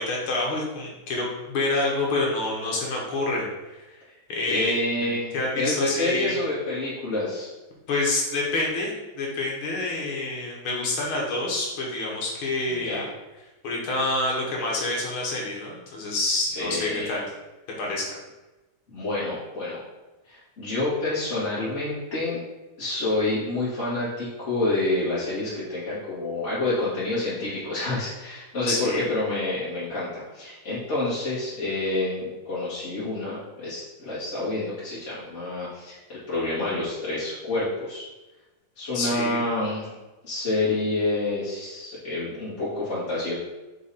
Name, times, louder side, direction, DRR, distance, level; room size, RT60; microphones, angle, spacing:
voice 1, 0.0-3.8 4.3-4.8 5.0-6.4 7.9-13.1 13.6-17.3 17.8-18.2 28.7-29.0 38.9-39.5, left 2 dB, 75° left, -2 dB, 2.2 m, -27 dB
voice 2, 4.4-7.5 12.7-13.0 16.6-17.2 18.9-19.8 20.3-22.4 22.8-38.0 38.8-40.0 40.2-43.3, left 2 dB, 35° left, -11 dB, 2.1 m, -28 dB
6.1 x 3.9 x 4.2 m, 1.1 s
omnidirectional pair, 2.4 m